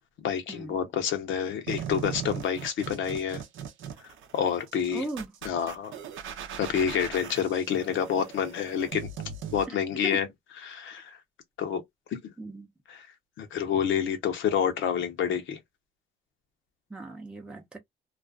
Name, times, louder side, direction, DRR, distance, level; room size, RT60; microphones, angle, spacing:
voice 1, 0.2-3.4 4.3-5.0 5.4-6.0 6.6-9.1 9.5-10.3 10.6-11.2 11.6-11.8 12.1-12.2 12.9-13.1 13.4-15.6, left 8 dB, 75° left, 0.7 m, -28 dB
sound 1, 1.7-9.7, right 8 dB, 80° right, 0.6 m, -39 dB
voice 2, 4.9-5.3 9.7-9.8 10.0-10.2 12.4-12.7 16.9-17.8, right 2 dB, 5° right, 0.5 m, -37 dB
2.4 x 2.3 x 2.3 m
cardioid pair, 90°, 20 cm